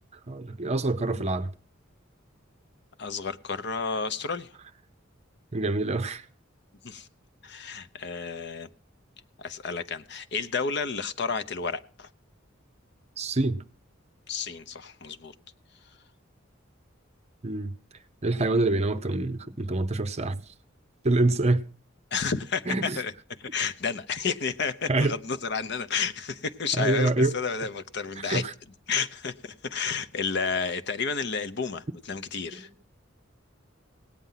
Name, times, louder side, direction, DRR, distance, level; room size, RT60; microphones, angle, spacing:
voice 1, 0.3-1.5 5.5-6.2 13.2-13.6 17.4-17.7 18.2-20.4 21.0-21.7 22.7-23.0 24.9-25.1 26.7-27.3 28.2-28.5 32.6-32.8, right 2 dB, 35° right, 0.7 m, -26 dB
voice 2, 3.0-4.5 6.8-7.1 7.4-8.7 9.4-12.1 14.3-15.3 22.1-23.1 23.4-28.4 28.9-32.7, left 5 dB, 60° left, 0.8 m, -31 dB
17.5 x 9.2 x 5.7 m
head